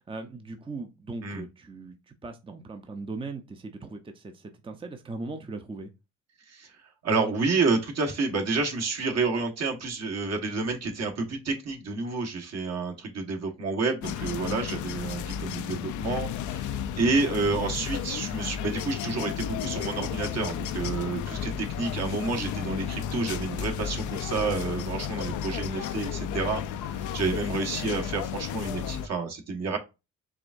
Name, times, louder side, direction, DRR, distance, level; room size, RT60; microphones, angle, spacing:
voice 1, 0.0-5.9 17.5-17.9, right 3 dB, 15° right, 6 dB, 0.6 m, -39 dB
voice 2, 7.0-29.8, right 3 dB, 60° right, 3 dB, 1.4 m, -29 dB
sound 1, 14.0-29.1, left 8 dB, 80° left, 0.5 m, -33 dB
4.9 x 3.4 x 2.5 m, 0.26 s
cardioid pair, 90°, 30 cm